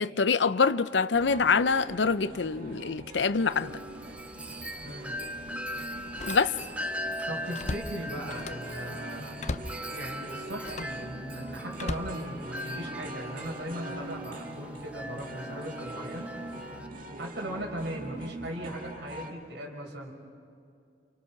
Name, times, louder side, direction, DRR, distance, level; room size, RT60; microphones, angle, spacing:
voice 1, 0.0-3.7 6.3-6.5, left 5 dB, 80° left, 0.7 m, -25 dB
sound 1, 1.1-19.3, right 1 dB, 50° right, 2.0 m, -43 dB
Wind chime, 3.5-16.9, equal, 10° right, 0.8 m, -40 dB
Slam, 4.0-4.2 4.6-4.7 6.0-6.9 7.2-8.8 9.4-9.8 10.6-11.0 11.7-12.8 13.4-13.7, left 2 dB, 40° left, 0.7 m, -38 dB
voice 2, 4.8-5.2 7.3-9.4 9.9-16.3 17.2-20.1, right 1 dB, 75° right, 5.3 m, -38 dB
29.5 x 29.0 x 5.9 m
head